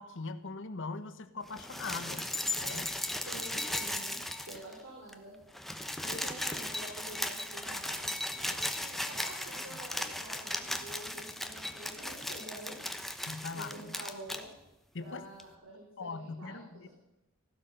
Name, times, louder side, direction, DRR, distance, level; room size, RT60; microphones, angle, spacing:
voice 1, 0.0-2.3 2.6-2.9 6.0-6.3 9.7-9.8 13.3-13.9 14.9-15.2 16.0-16.9, left 4 dB, 60° left, 11 dB, 1.1 m, -41 dB
sound 1, 1.5-4.8 5.1-5.2 5.4-14.4 15.4-15.5, left 1 dB, ahead, 1.0 m, -37 dB
voice 2, 3.1-4.2 4.5-5.3 6.1-12.8 13.5-14.5 15.0-16.9, right 1 dB, 65° right, -2 dB, 3.9 m, -48 dB
15.0 x 12.0 x 6.7 m, 0.90 s
head